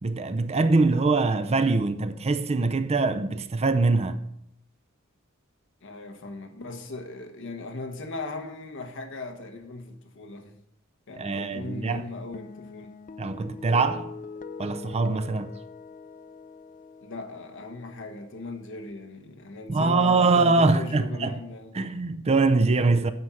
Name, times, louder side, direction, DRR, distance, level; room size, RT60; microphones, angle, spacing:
voice 1, 0.0-4.2 11.2-12.1 13.2-14.1 14.6-15.5 19.7-21.4 21.7-23.1, right 3 dB, 30° right, 0.5 m, -23 dB
voice 2, 5.8-10.6 11.1-12.9 17.0-21.8, left 2 dB, 65° left, 1.2 m, -37 dB
sound 1, 12.3-18.9, left 4 dB, 40° left, 0.5 m, -43 dB
9.5 x 6.2 x 5.6 m
head